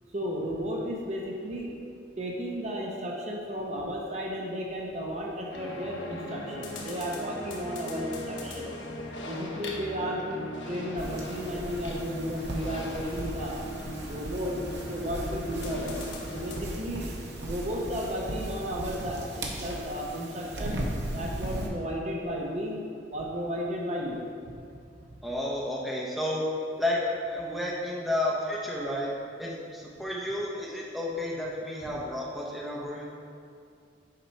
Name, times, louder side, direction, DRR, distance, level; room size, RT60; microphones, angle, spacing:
voice 1, 0.1-1.8 2.2-8.7 9.2-13.6 14.0-14.6 14.9-17.1 17.4-20.8 21.1-22.8 23.1-24.8 25.1-25.2, equal, 35° right, -1 dB, 0.7 m, -34 dB
sound 1, 5.5-16.6, left 1 dB, 75° left, 0.9 m, -39 dB
sound 2, 11.0-21.7, right 1 dB, 60° right, 0.9 m, -37 dB
voice 2, 25.2-26.4 26.8-29.1 29.4-33.1, left 1 dB, ahead, -4 dB, 0.8 m, -31 dB
6.7 x 4.5 x 4.5 m, 2.4 s
head